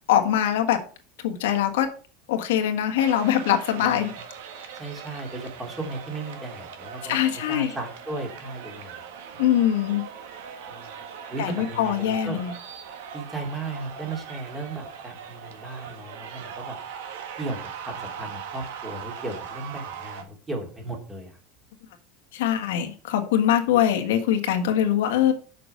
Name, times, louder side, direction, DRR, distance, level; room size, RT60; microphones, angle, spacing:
voice 1, 0.1-0.8 1.2-1.9 2.3-4.1 7.0-7.7 9.4-10.0 11.4-12.5 22.3-25.3, left 10 dB, 90° left, 5 dB, 1.6 m, -22 dB
sound 1, 3.0-20.2, right 7 dB, 80° right, 1.4 m, -40 dB
voice 2, 3.8-4.1 4.7-7.2 7.5-8.9 9.3-9.4 10.7-10.9 11.3-12.4 13.1-16.8 17.4-21.4, right 2 dB, 10° right, 1 dB, 2.5 m, -35 dB
6.9 x 6.0 x 6.5 m, 0.39 s
supercardioid pair, 160°, 0 cm